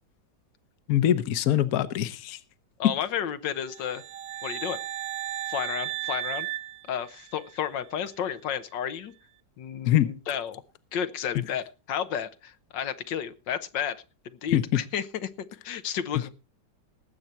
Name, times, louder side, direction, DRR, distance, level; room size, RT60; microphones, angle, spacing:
voice 1, 0.9-2.4 2.8-2.9 9.9-10.1 11.3-11.4 14.5-14.8, left 12 dB, 60° left, 14 dB, 1.3 m, -23 dB
voice 2, 2.8-4.0 4.4-4.8 5.5-6.5 6.9-9.1 9.6-10.6 10.9-14.0 14.4-16.3, left 8 dB, 85° left, 11 dB, 1.7 m, -32 dB
sound 1, 3.6-7.6, right 13 dB, 80° right, 1.5 m, -35 dB
19.5 x 8.2 x 4.3 m, 0.32 s
omnidirectional pair, 1.9 m